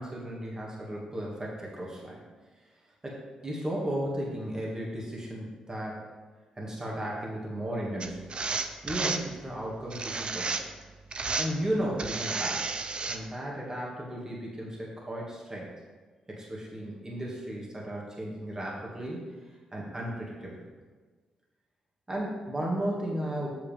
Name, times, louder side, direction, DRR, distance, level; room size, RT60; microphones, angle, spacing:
voice 1, 0.0-2.2 3.0-6.0 6.6-8.2 8.8-10.6 11.4-12.6 13.1-15.7 16.3-19.2 19.7-20.7 22.1-23.5, right 1 dB, 25° right, -4 dB, 2.3 m, -34 dB
sound 1, 8.0-9.2 9.9-10.8 11.1-11.5 12.0-13.2, right 4 dB, 45° right, 0.7 m, -32 dB
7.9 x 6.9 x 3.6 m, 1.4 s
supercardioid pair, 55°, 2 cm